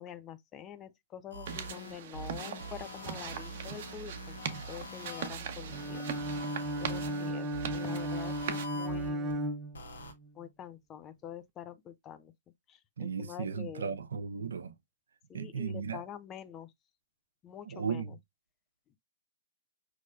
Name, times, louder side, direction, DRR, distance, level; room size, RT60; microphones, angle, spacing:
voice 1, 0.0-4.4 4.7-6.0 6.8-9.4 10.3-12.3 12.7-13.9 15.3-16.7 17.4-18.2, left 9 dB, 25° left, 0.6 m, -46 dB
sound 1, 1.3-9.3 9.7-10.1, right 1 dB, 70° left, 1.4 m, -44 dB
sound 2, 1.5-8.7, right 8 dB, 50° right, 0.9 m, -41 dB
Bowed string instrument, 5.7-10.3, right 1 dB, 20° right, 0.6 m, -35 dB
voice 2, 13.0-14.7 15.3-16.0 17.7-18.2, right 6 dB, 70° right, 0.6 m, -36 dB
5.4 x 3.1 x 2.4 m
figure-of-eight pair, 120°, 0 cm